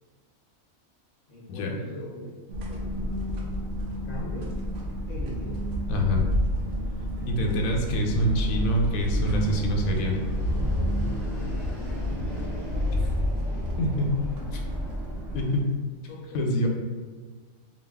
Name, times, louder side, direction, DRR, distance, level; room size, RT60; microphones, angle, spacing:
voice 1, 1.3-2.4 2.7-2.9 3.4-3.6 4.0-4.5 5.1-5.6 7.2-8.0 16.1-16.6, left 1 dB, 65° left, -4 dB, 0.8 m, -40 dB
sound 1, 2.5-15.4, equal, 70° right, 0.9 m, -29 dB
Fixed-wing aircraft airplane, 5.4-15.6, right 1 dB, 20° left, 1.1 m, -42 dB
voice 2, 5.9-6.3 7.3-10.2 13.8-14.1 14.5-14.6 15.3-15.7 16.3-16.7, equal, 90° left, 1 dB, 1.0 m, -25 dB
2.7 x 2.4 x 3.3 m, 1.5 s
omnidirectional pair, 1.4 m